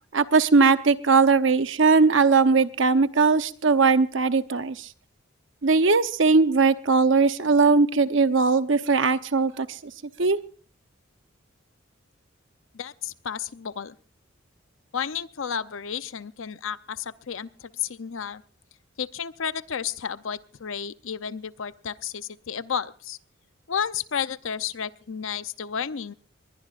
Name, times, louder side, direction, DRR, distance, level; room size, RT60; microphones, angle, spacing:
voice 1, 0.1-4.9 5.6-9.8 10.2-10.4, right 4 dB, 70° right, 11 dB, 0.8 m, -20 dB
voice 2, 12.7-14.0 14.9-18.4 19.0-23.2 23.7-26.1, left 7 dB, 80° left, 14 dB, 0.7 m, -32 dB
21.0 x 20.5 x 2.5 m, 0.40 s
head